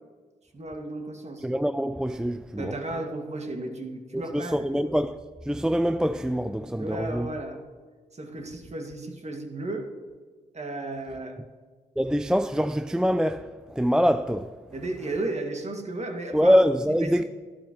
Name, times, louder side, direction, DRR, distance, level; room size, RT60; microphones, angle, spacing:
voice 1, 0.5-1.5 2.6-4.9 6.8-7.6 8.1-9.9 10.5-11.4 14.7-16.6 17.0-17.2, right 2 dB, 40° right, 2.0 m, -34 dB
voice 2, 1.4-2.7 4.1-5.2 5.5-7.3 12.0-14.6 16.3-17.2, equal, 5° right, 0.4 m, -24 dB
13.0 x 12.0 x 3.0 m
hypercardioid pair, 45°, 18 cm